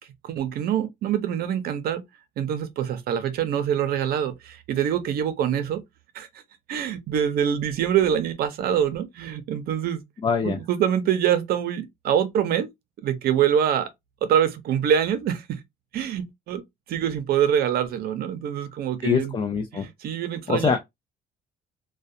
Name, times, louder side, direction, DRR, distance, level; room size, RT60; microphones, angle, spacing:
voice 1, 0.2-2.0 2.4-5.8 6.1-6.3 6.7-10.0 10.4-12.7 13.0-13.9 14.2-15.6 15.9-16.6 16.9-19.3 19.7-20.7, right 9 dB, 65° right, 0.6 m, -25 dB
voice 2, 10.2-10.6 19.0-19.9 20.5-20.8, left 6 dB, 30° left, 0.4 m, -23 dB
2.3 x 2.1 x 2.6 m
cardioid pair, 110°, 17 cm